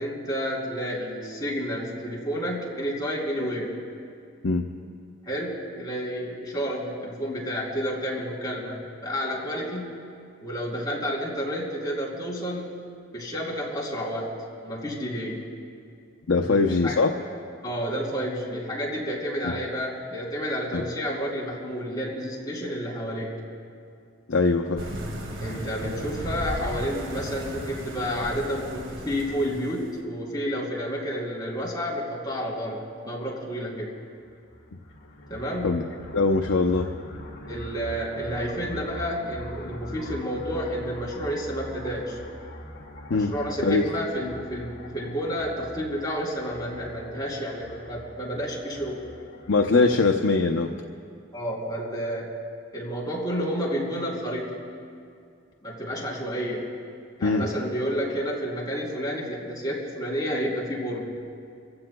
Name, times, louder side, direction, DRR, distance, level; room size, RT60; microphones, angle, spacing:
voice 1, 0.0-3.7 5.2-9.9 10.4-12.7 13.1-15.5 16.4-17.0 17.6-23.4 25.4-33.9 35.3-35.7 37.5-42.2 43.1-49.0 49.7-49.9 51.3-52.3 52.7-54.7 55.6-56.7 57.2-61.2, equal, 20° left, -3 dB, 3.1 m, -30 dB
voice 2, 16.3-17.1 19.4-19.5 20.7-20.8 24.3-24.8 35.6-35.8 36.1-36.9 43.1-43.3 43.6-43.8 49.5-50.7 57.2-57.4, left 3 dB, 90° left, 4 dB, 0.7 m, -21 dB
sound 1, 24.8-30.0, equal, 70° right, 2.0 m, -35 dB
sound 2, 34.2-49.8, left 1 dB, 65° left, 1.8 m, -42 dB
27.5 x 15.5 x 2.2 m, 2.3 s
head